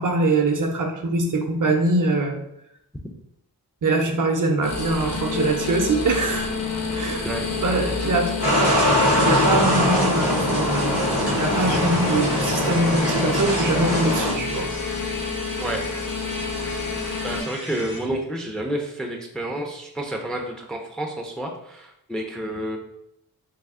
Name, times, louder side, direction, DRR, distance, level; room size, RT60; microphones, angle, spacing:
voice 1, 0.0-2.4 3.8-6.5 6.9-7.3 7.6-8.3 9.2-14.7, right 2 dB, 55° right, 3 dB, 0.6 m, -23 dB
sound 1, 4.6-17.4, left 4 dB, 45° left, 0.6 m, -29 dB
voice 2, 7.2-7.9 15.6-15.8 17.2-22.8, right 1 dB, ahead, 1 dB, 0.4 m, -30 dB
sound 2, 8.4-14.3, equal, 85° left, 1.5 m, -22 dB
sound 3, 11.6-18.1, left 1 dB, 60° left, 1.1 m, -37 dB
3.3 x 2.1 x 3.5 m, 0.78 s
wide cardioid pair, 80°, 38 cm